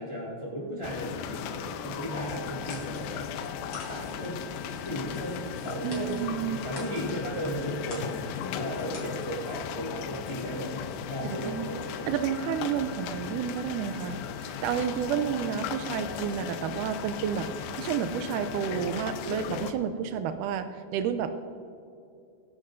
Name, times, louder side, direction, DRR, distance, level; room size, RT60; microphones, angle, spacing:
voice 1, 0.0-3.5 3.8-4.5 4.8-10.7 11.0-12.1, equal, 15° left, -6 dB, 1.2 m, -36 dB
sound 1, 0.8-19.7, left 7 dB, 85° left, 2.5 m, -36 dB
sound 2, 2.1-9.7, left 2 dB, 40° left, 3.9 m, -49 dB
voice 2, 5.8-6.6 11.2-11.7 12.1-17.5 17.8-21.4, right 8 dB, 85° right, 9 dB, 1.8 m, -31 dB
24.0 x 11.0 x 2.6 m, 2.5 s
omnidirectional pair, 4.2 m